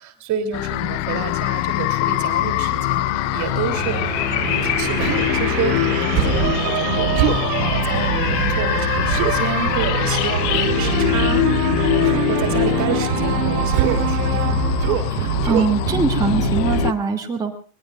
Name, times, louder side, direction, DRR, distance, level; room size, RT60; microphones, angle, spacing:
voice 1, 0.0-3.1 3.3-4.1 4.4-11.4 11.8-14.6, right 6 dB, 35° right, 8 dB, 3.3 m, -29 dB
sound 1, 0.5-16.9, left 18 dB, 50° left, 0.7 m, -23 dB
sound 2, 1.7-16.9, right 11 dB, 80° right, 0.9 m, -25 dB
Human voice, 5.0-5.3 6.1-6.5 7.1-7.5 9.1-9.3 10.5-10.8 12.0-12.3 13.7-14.1 14.8-15.1 15.4-15.7, right 11 dB, 60° right, 2.7 m, -23 dB
voice 2, 15.1-17.5, right 5 dB, 10° right, -1 dB, 2.6 m, -22 dB
25.0 x 21.0 x 2.5 m, 0.41 s
hypercardioid pair, 115°, 47 cm